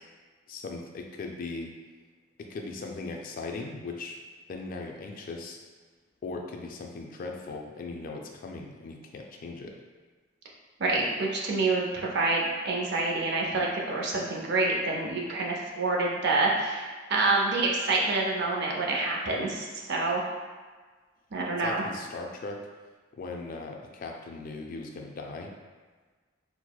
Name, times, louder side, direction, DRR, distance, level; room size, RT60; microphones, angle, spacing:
voice 1, 0.5-1.7 2.4-4.2 4.5-5.6 6.2-9.7 21.6-22.7 23.2-25.5, left 3 dB, 45° left, 2 dB, 0.3 m, -38 dB
voice 2, 10.8-20.2 21.3-21.8, right 3 dB, 60° right, -1 dB, 0.5 m, -27 dB
4.5 x 2.0 x 2.2 m, 1.4 s
head